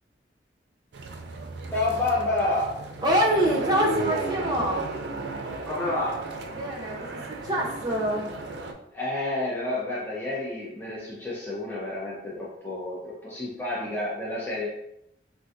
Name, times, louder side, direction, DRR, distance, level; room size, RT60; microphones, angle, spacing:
sound 1, 0.9-8.7, right 3 dB, 85° right, 0.4 m, -34 dB
voice 1, 1.7-2.8 5.7-6.3 8.9-14.7, left 2 dB, 10° left, -6 dB, 0.5 m, -29 dB
voice 2, 3.0-4.8 6.5-8.3, equal, 25° right, -2 dB, 0.7 m, -25 dB
3.6 x 2.5 x 2.5 m, 0.79 s
head